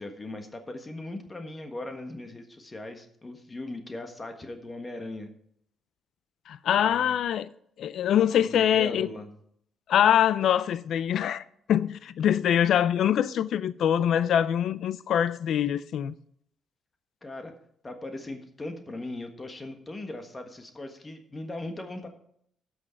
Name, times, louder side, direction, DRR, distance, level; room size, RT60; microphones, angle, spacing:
voice 1, 0.0-5.3 6.8-7.1 8.3-9.3 17.2-17.5 17.8-22.1, left 2 dB, 25° left, 1.5 m, -39 dB
voice 2, 6.5-7.5 7.8-9.1 9.9-16.1, left 10 dB, 70° left, 0.4 m, -24 dB
12.0 x 6.3 x 4.5 m
cardioid pair, 90°, 0 cm